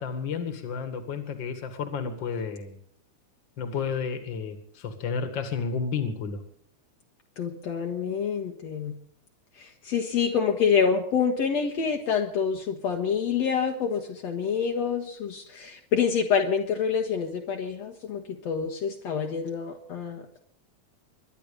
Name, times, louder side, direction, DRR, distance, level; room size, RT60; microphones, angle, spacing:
voice 1, 0.0-2.8 3.6-6.4, left 5 dB, 40° left, 8 dB, 2.4 m, -31 dB
voice 2, 7.4-9.0 9.6-20.2, left 6 dB, 65° left, 3 dB, 2.5 m, -27 dB
23.0 x 11.0 x 5.3 m, 0.62 s
omnidirectional pair, 3.4 m